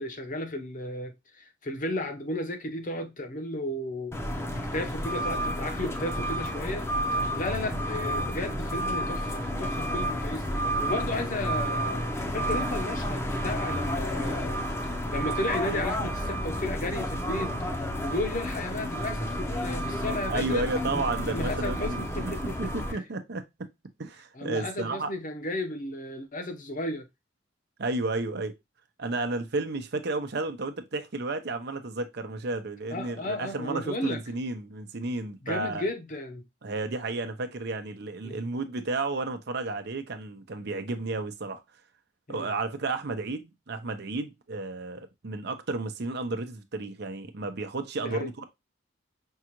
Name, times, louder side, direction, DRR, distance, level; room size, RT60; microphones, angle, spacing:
voice 1, 0.0-4.1 4.7-6.9 7.3-17.6 18.0-20.7 21.2-23.0 24.3-27.0 32.9-34.2 35.4-36.4 38.2-38.4 42.3-42.5 48.0-48.3, left 1 dB, 45° left, 0.9 m, -34 dB
sound 1, 4.1-22.9, equal, 15° left, 0.7 m, -31 dB
voice 2, 20.3-22.3 22.6-23.7 24.0-25.1 27.8-28.5 29.0-35.8 36.6-41.6 42.3-48.4, right 2 dB, 60° right, 0.7 m, -32 dB
5.5 x 2.4 x 2.9 m
head